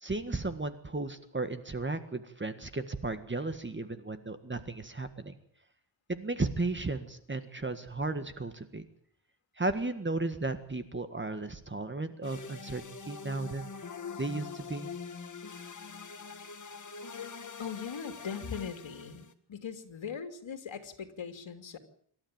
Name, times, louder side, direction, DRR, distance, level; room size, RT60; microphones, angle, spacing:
voice 1, 0.0-5.3 6.1-8.8 9.6-13.6 14.2-14.9, right 2 dB, 25° right, 10 dB, 1.7 m, -34 dB
sound 1, 12.2-19.3, left 5 dB, 40° left, 1.7 m, -44 dB
voice 2, 17.6-21.8, left 6 dB, 70° left, 7 dB, 2.9 m, -40 dB
26.5 x 13.0 x 8.9 m, 0.64 s
wide cardioid pair, 115°, 48 cm